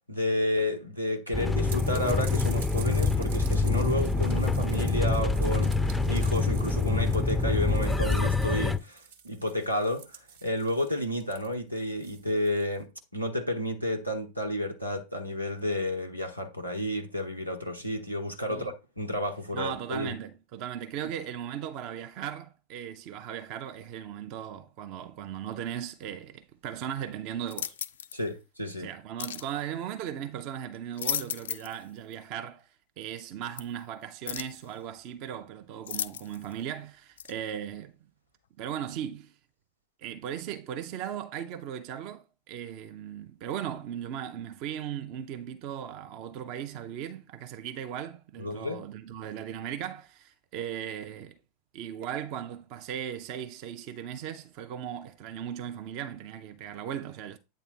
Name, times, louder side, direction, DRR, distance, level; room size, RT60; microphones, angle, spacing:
voice 1, 0.1-20.1 28.1-28.9 48.4-48.8, left 1 dB, 90° right, 1.1 m, -31 dB
sound 1, 1.3-8.8, left 3 dB, 5° left, 0.5 m, -26 dB
sound 2, 1.7-12.8, right 7 dB, 60° right, 1.1 m, -48 dB
voice 2, 19.5-27.7 28.8-32.7 33.0-38.0 38.6-39.3 40.0-51.4 51.7-57.4, right 9 dB, 40° right, 0.6 m, -37 dB
sound 3, 27.5-28.2 29.2-29.5 30.7-31.8 32.1-32.2 33.6-33.7 34.3-34.6 35.9-36.5 37.2-37.3, left 9 dB, 65° left, 0.4 m, -35 dB
8.4 x 3.3 x 4.3 m
figure-of-eight pair, 90°, 0 cm